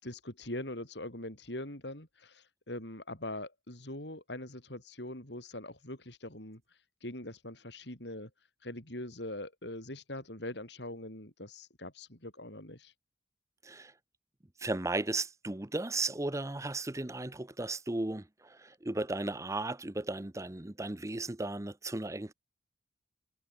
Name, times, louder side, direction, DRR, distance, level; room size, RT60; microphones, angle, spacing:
voice 1, 0.0-6.6 7.0-8.3 8.6-12.9, left 1 dB, 65° left, 6.8 m, -42 dB
voice 2, 14.6-22.3, right 2 dB, 15° right, 0.8 m, -35 dB
head